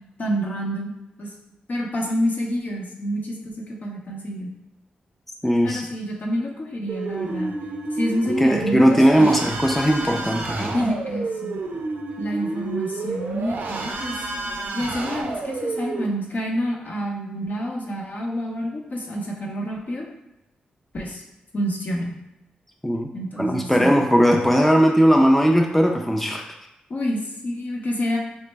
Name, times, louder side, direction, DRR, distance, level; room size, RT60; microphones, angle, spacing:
voice 1, 0.2-0.9 1.2-1.3 1.7-4.5 5.6-7.5 7.9-9.3 10.7-11.6 12.2-14.2 14.7-20.1 20.9-21.2 21.5-22.1 23.1-23.9 26.9-28.2, equal, 55° left, -1 dB, 0.7 m, -28 dB
voice 2, 5.4-5.8 8.4-10.8 22.8-23.1 23.4-26.5, equal, 5° left, 1 dB, 0.4 m, -18 dB
sound 1, 6.9-16.1, right 3 dB, 65° right, 0.4 m, -30 dB
3.1 x 2.0 x 3.3 m, 0.92 s
supercardioid pair, 45°, 3 cm